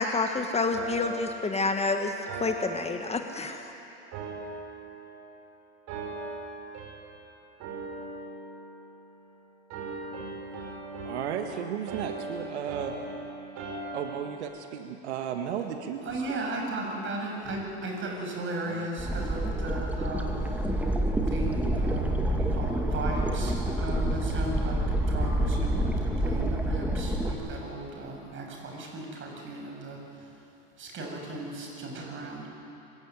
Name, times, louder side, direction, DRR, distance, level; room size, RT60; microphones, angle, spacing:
voice 1, 0.0-2.1 2.4-3.6, left 3 dB, 20° left, 6 dB, 1.4 m, -28 dB
sound 1, 0.7-3.7 4.1-5.5 5.9-7.3 7.6-9.3 9.7-14.4, right 2 dB, 55° right, 5.2 m, -39 dB
voice 2, 11.0-13.0 13.9-16.4 18.6-18.9, right 8 dB, 80° right, 5 dB, 1.6 m, -34 dB
voice 3, 16.0-20.4 21.3-30.0 30.8-32.4, right 2 dB, 35° right, 1 dB, 7.4 m, -36 dB
sound 2, 19.0-27.3, right 1 dB, 5° right, 2.4 m, -28 dB
25.0 x 16.5 x 9.6 m, 2.9 s
hypercardioid pair, 105°, 33 cm